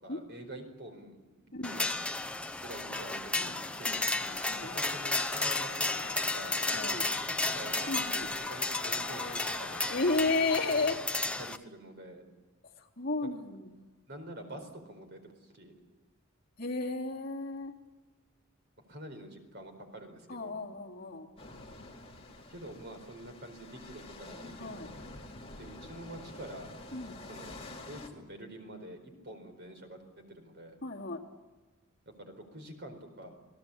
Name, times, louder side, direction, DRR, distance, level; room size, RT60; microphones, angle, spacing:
voice 1, 0.0-1.2 1.4-1.9 2.6-7.9 8.5-9.8 11.4-12.2 14.1-15.7 18.9-20.6 22.5-25.1 25.6-26.7 27.2-30.8 32.1-33.4, right 1 dB, 50° right, 6 dB, 4.4 m, -47 dB
sound 1, 1.6-11.6, left 2 dB, 5° left, 0.8 m, -33 dB
sound 2, 4.2-10.6, left 5 dB, 80° left, 1.7 m, -47 dB
voice 2, 4.5-4.8 6.7-7.0 7.9-8.3 9.9-11.0 12.8-13.9 16.6-17.7 20.3-21.3 24.6-24.9 26.9-27.2 30.8-31.2, left 3 dB, 45° left, -1 dB, 3.0 m, -33 dB
sound 3, 21.4-28.1, left 2 dB, 25° left, 2.8 m, -48 dB
28.0 x 18.0 x 8.6 m, 1.2 s
head